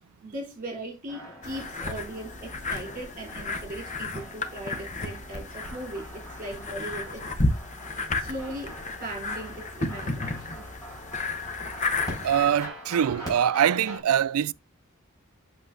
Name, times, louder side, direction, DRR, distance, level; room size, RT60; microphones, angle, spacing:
voice 1, 0.2-7.2 8.2-10.7, right 1 dB, 35° right, 3.2 m, -38 dB
sound 1, 1.1-14.0, equal, 15° left, 4.7 m, -43 dB
sound 2, 1.4-12.7, left 2 dB, 35° left, 0.9 m, -33 dB
voice 2, 12.2-14.5, right 9 dB, 85° right, 0.4 m, -23 dB
7.9 x 6.5 x 2.5 m
head